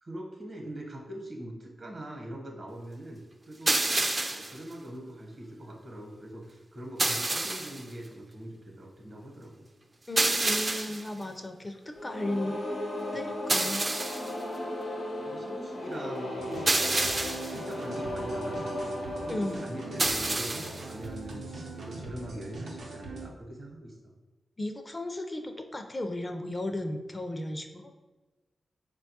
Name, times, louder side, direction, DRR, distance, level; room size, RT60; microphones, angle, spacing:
voice 1, 0.0-3.2 3.5-3.8 4.3-9.7 15.2-16.8 17.4-24.1, right 1 dB, 60° right, 1 dB, 0.9 m, -42 dB
sound 1, 3.7-4.6 7.0-7.8 10.2-11.1 13.5-14.3 16.7-17.6 20.0-20.8, right 2 dB, 35° right, 0.4 m, -28 dB
voice 2, 10.1-12.6 13.1-13.9 19.3-19.7 24.6-27.9, left 1 dB, 30° left, 5 dB, 0.4 m, -35 dB
sound 2, 11.9-20.8, left 1 dB, 75° left, 0.8 m, -36 dB
sound 3, 16.4-23.3, right 3 dB, 80° right, 0.6 m, -42 dB
4.0 x 2.2 x 2.7 m, 1.2 s
supercardioid pair, 45°, 0 cm